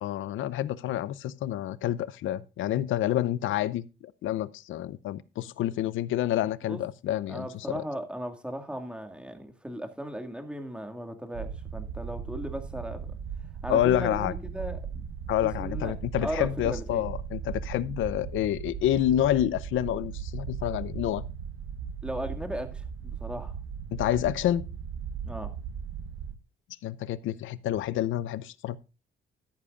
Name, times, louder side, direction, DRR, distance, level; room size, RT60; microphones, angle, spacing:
voice 1, 0.0-7.8 13.7-14.3 15.3-21.3 23.9-24.6 26.8-28.8, left 12 dB, 80° left, 0.7 m, -28 dB
voice 2, 7.3-13.1 13.6-15.1 15.4-15.9 16.2-17.1 22.0-23.6 25.2-25.5, right 1 dB, 5° right, 2.1 m, -37 dB
sound 1, 11.3-26.4, right 7 dB, 85° right, 1.0 m, -37 dB
13.5 x 11.0 x 2.5 m
cardioid pair, 90°, 20 cm